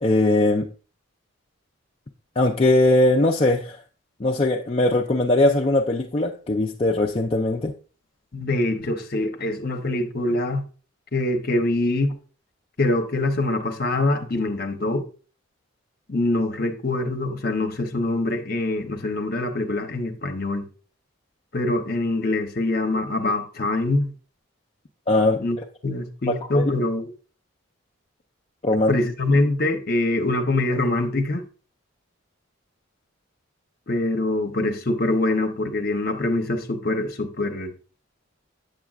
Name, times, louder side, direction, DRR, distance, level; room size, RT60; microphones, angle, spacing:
voice 1, 0.0-0.7 2.4-3.8 4.2-7.7 25.1-25.4 26.5-26.7 28.6-28.9, left 2 dB, 30° left, 0.4 m, -20 dB
voice 2, 8.3-10.6 11.1-12.1 12.8-15.0 16.1-20.7 21.5-24.1 25.4-25.6 25.8-27.1 28.9-31.4 33.9-37.7, left 2 dB, 45° left, 0.8 m, -24 dB
7.9 x 7.6 x 2.4 m
head